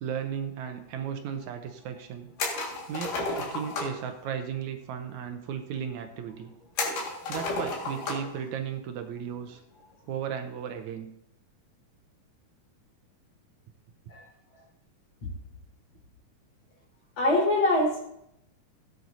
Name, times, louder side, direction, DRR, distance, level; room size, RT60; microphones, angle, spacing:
voice 1, 0.0-2.3 2.9-6.5 7.3-9.6 10.1-11.1, right 8 dB, 75° right, 7 dB, 2.0 m, -35 dB
sound 1, 2.4-4.0 6.8-8.4 8.7-8.8 10.4-10.7, left 2 dB, 85° left, 3.6 m, -32 dB
voice 2, 17.2-18.1, left 1 dB, 60° left, -4 dB, 5.4 m, -24 dB
17.0 x 9.4 x 2.7 m, 0.78 s
omnidirectional pair, 3.7 m